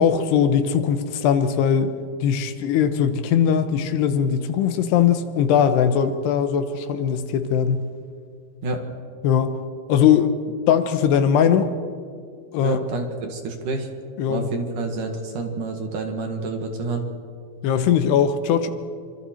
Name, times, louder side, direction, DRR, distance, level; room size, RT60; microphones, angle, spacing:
voice 1, 0.0-1.9 2.2-7.9 9.2-9.6 9.9-10.3 10.7-11.8 12.5-12.8 14.2-14.5 17.6-18.7, left 8 dB, 80° left, 9 dB, 3.1 m, -20 dB
voice 2, 12.6-13.9 14.3-17.0, right 3 dB, 55° right, 4 dB, 3.0 m, -28 dB
27.5 x 25.0 x 4.5 m, 2.2 s
omnidirectional pair, 4.8 m